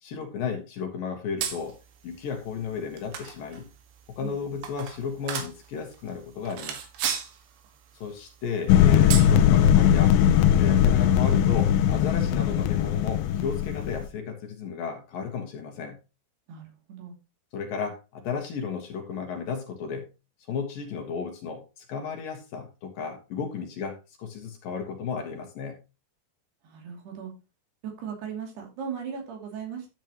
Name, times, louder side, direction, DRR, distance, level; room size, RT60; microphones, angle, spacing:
voice 1, 0.0-1.8 2.0-3.7 4.1-6.8 7.9-10.2 10.5-16.0 17.5-20.1 20.5-25.8, left 6 dB, 65° left, 3 dB, 2.8 m, -34 dB
sound 1, 1.4-14.1, right 8 dB, 90° right, 3.9 m, -39 dB
voice 2, 4.2-4.6 16.5-17.1 23.4-23.5 26.6-27.3 27.8-29.9, right 7 dB, 70° right, 2 dB, 4.7 m, -38 dB
sound 2, 8.7-14.1, left 10 dB, 80° left, 2.5 m, -20 dB
12.0 x 8.1 x 3.0 m, 0.28 s
omnidirectional pair, 5.0 m